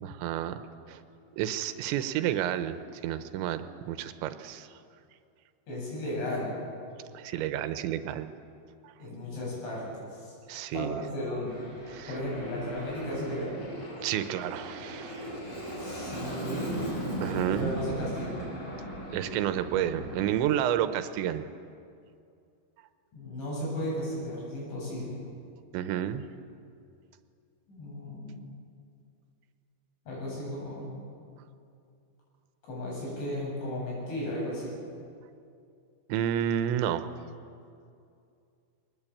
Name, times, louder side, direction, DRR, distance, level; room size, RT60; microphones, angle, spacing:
voice 1, 0.0-0.6 0.9-1.0 1.4-4.7 7.1-8.3 8.8-8.9 10.5-11.0 11.9-12.1 14.0-15.3 17.2-17.8 19.1-21.5 25.7-26.2 36.1-37.1, right 11 dB, 85° right, 11 dB, 3.1 m, -30 dB
voice 2, 5.7-6.5 9.0-10.3 10.7-13.6 15.8-16.8 17.5-18.5 23.1-25.2 27.7-28.3 30.1-30.9 32.7-34.8, left 1 dB, 80° left, -4 dB, 10.5 m, -35 dB
Aircraft, 11.5-20.3, right 1 dB, 20° left, 5.9 m, -38 dB
22.5 x 19.0 x 8.6 m, 2.4 s
omnidirectional pair, 5.2 m